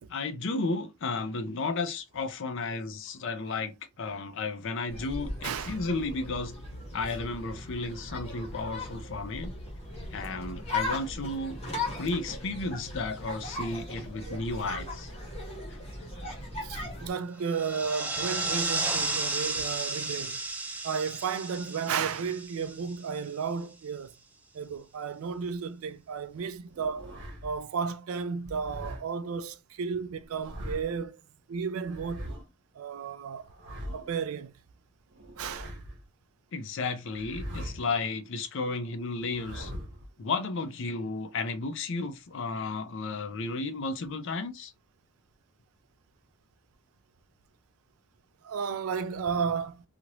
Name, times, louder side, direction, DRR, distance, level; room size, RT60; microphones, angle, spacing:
voice 1, 0.1-6.5 6.9-9.5 10.1-11.6 12.0-15.1 36.5-39.7 40.2-44.7, left 3 dB, 60° left, 0.5 m, -33 dB
sound 1, 4.9-17.1, left 2 dB, 30° left, 1.2 m, -38 dB
voice 2, 5.4-5.8 14.3-14.9 16.6-20.4 20.8-24.1 24.5-27.0 27.4-31.2 31.5-32.3 32.7-33.5 33.9-34.5 35.4-35.7 48.4-49.8, right 6 dB, 80° right, 0.4 m, -33 dB
sound 2, 17.4-23.3, right 3 dB, 10° right, 0.5 m, -33 dB
sound 3, 26.7-27.6 28.4-29.0 30.2-31.0 31.8-32.4 33.4-34.2 35.1-36.0 37.1-38.0 39.2-40.1, equal, 55° right, 1.2 m, -41 dB
3.0 x 2.5 x 2.9 m
head